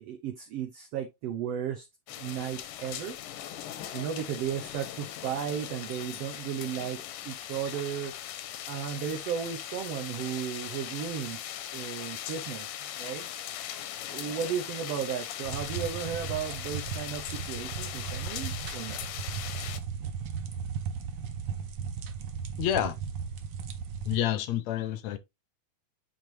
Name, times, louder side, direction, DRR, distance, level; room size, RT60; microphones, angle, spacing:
voice 1, 0.0-1.9 2.2-3.2 3.9-8.1 8.7-12.7 13.0-13.3 14.1-19.1, right 8 dB, 65° right, 1.7 m, -35 dB
sound 1, 2.1-19.8, left 11 dB, 90° left, 2.4 m, -39 dB
sound 2, 15.4-24.2, right 7 dB, 85° right, 1.0 m, -36 dB
voice 2, 22.6-23.0 24.1-25.2, left 11 dB, 75° left, 1.8 m, -28 dB
7.8 x 4.8 x 3.3 m
omnidirectional pair, 3.5 m